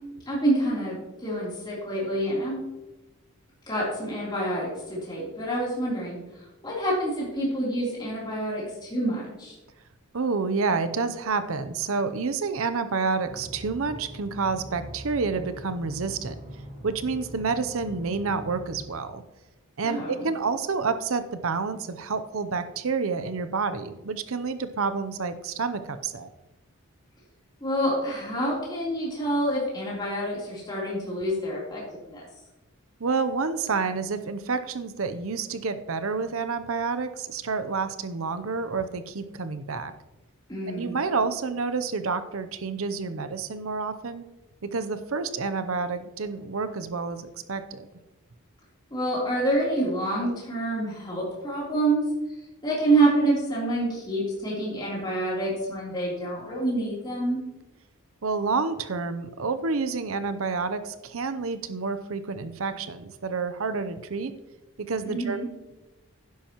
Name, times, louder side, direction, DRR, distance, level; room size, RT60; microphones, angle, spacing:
voice 1, 0.3-2.6 3.7-6.2 6.6-9.6 19.8-20.3 27.6-32.2 40.5-41.0 48.9-52.0 52.6-57.4 65.0-65.4, right 1 dB, 20° left, -6 dB, 3.4 m, -27 dB
voice 2, 10.1-16.4 16.8-19.2 19.8-26.3 33.0-39.9 40.7-44.2 44.7-47.9 58.2-64.3 64.8-65.4, right 4 dB, 65° right, 10 dB, 0.7 m, -29 dB
sound 1, 13.2-18.9, right 1 dB, 30° right, 2.6 m, -42 dB
11.5 x 10.5 x 3.0 m, 1.0 s
head